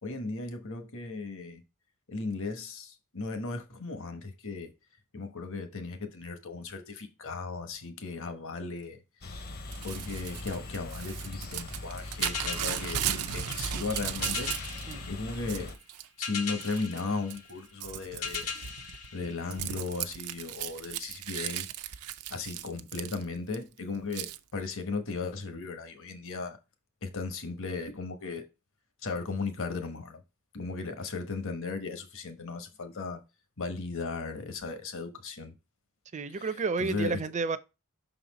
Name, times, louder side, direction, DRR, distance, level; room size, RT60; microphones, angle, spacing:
voice 1, 0.0-1.6 2.1-4.7 5.1-9.0 9.8-14.6 15.1-15.8 16.2-18.5 19.1-21.7 22.3-26.6 27.0-28.5 29.0-30.2 30.5-33.2 33.6-35.5 36.3-36.5 36.8-37.2, left 4 dB, 60° left, 1.1 m, -36 dB
sound 1, 9.2-15.8, left 2 dB, 45° left, 0.7 m, -41 dB
Crumpling crinkling / Tearing, 9.7-14.9 15.3-16.1 16.6-17.0 17.3-23.5 24.1-24.4, right 11 dB, 90° right, 0.5 m, -36 dB
sound 2, 12.2-20.1, left 6 dB, 90° left, 1.7 m, -40 dB
voice 2, 36.1-37.6, right 4 dB, 30° right, 0.5 m, -31 dB
6.0 x 4.2 x 4.0 m
head